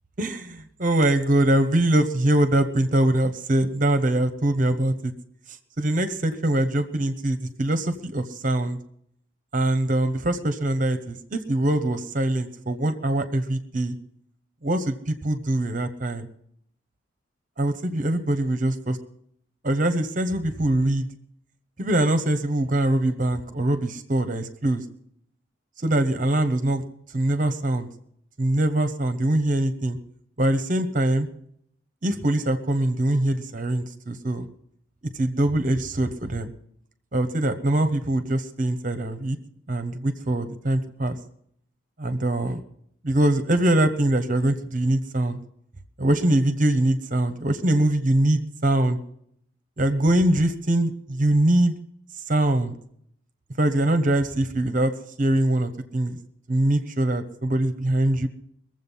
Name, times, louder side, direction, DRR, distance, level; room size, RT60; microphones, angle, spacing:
voice 1, 0.2-5.1 5.8-8.8 9.5-13.9 14.6-16.3 17.6-19.0 19.6-21.1 21.8-24.8 25.8-26.8 27.1-27.9 28.4-30.0 30.4-31.3 32.0-34.4 35.1-36.5 37.1-39.4 39.7-41.2 42.0-42.6 43.0-45.4 46.0-49.0 49.8-51.7 52.3-52.7 53.6-54.9 55.2-56.2 56.5-58.3, right 1 dB, 40° right, 9 dB, 1.0 m, -23 dB
22.0 x 7.7 x 5.6 m, 0.69 s
head